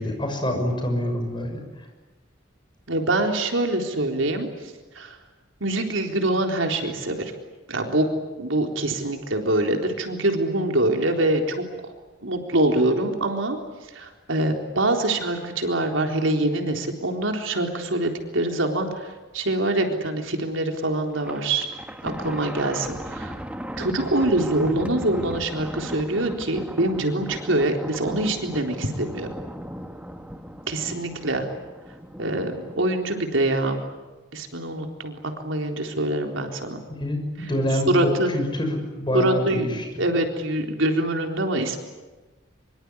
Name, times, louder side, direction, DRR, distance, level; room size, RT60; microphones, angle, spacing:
voice 1, 0.0-1.6 37.0-40.1, left 1 dB, 25° left, 3 dB, 6.4 m, -26 dB
voice 2, 2.9-4.5 5.0-5.2 5.6-7.3 7.7-8.1 8.4-11.6 12.2-13.6 13.9-21.7 22.0-23.4 23.8-29.3 30.7-31.5 32.2-33.8 34.3-36.8 37.9-38.3 39.1-41.8, right 1 dB, 90° right, 3 dB, 3.9 m, -24 dB
Thunder, 21.1-32.9, equal, 5° right, 1.4 m, -37 dB
24.5 x 24.0 x 9.8 m, 1.2 s
head